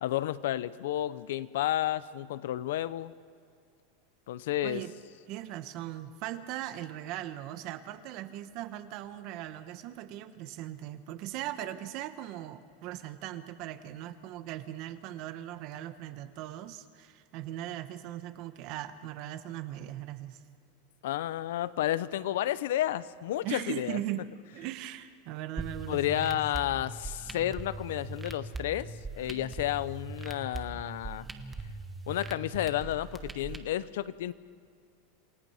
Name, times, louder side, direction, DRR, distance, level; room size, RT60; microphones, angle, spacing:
voice 1, 0.0-3.1 4.3-4.8 21.0-24.0 25.9-31.3 32.1-34.3, left 13 dB, 75° left, 16 dB, 0.8 m, -31 dB
voice 2, 5.3-20.4 23.4-26.4, right 13 dB, 40° right, 11 dB, 1.1 m, -39 dB
sound 1, 25.6-33.6, right 3 dB, 10° right, 1.0 m, -41 dB
28.0 x 18.0 x 5.7 m, 2.3 s
supercardioid pair, 170°, 0 cm